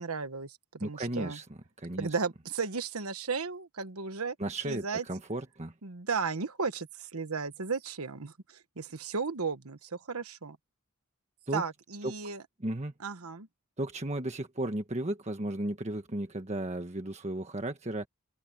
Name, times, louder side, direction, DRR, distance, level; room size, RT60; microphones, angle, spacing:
voice 1, 0.0-1.4 2.0-4.4 4.6-5.0 5.8-10.6 11.5-12.4 13.0-13.5, right 5 dB, 85° right, 1.3 m, -35 dB
voice 2, 0.8-1.5 1.8-2.1 4.4-5.7 11.5-11.6 12.0-12.1 12.6-12.9 13.8-18.1, right 1 dB, 30° right, 1.4 m, -34 dB
open air
head